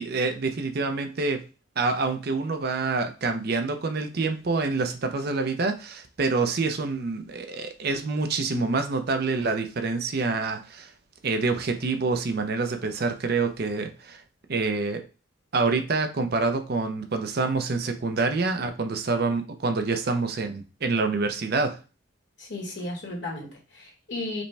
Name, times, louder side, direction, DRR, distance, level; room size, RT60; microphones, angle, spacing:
voice 1, 0.0-1.4 1.8-10.9 11.2-14.2 14.5-15.0 15.5-21.8, right 3 dB, 50° right, 0.5 m, -27 dB
voice 2, 22.4-24.4, left 2 dB, 60° left, 1.4 m, -34 dB
5.0 x 2.2 x 3.3 m
head